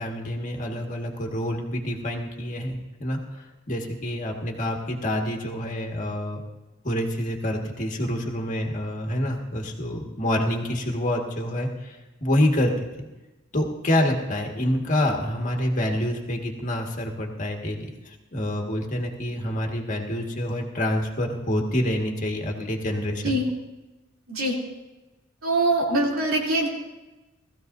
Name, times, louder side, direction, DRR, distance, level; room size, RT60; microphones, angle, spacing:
voice 1, 0.0-6.4 6.8-12.9 13.5-23.4, left 1 dB, 40° left, 1 dB, 1.8 m, -27 dB
voice 2, 25.4-26.7, right 2 dB, 85° right, -2 dB, 3.1 m, -23 dB
19.5 x 14.5 x 2.7 m, 1.1 s
head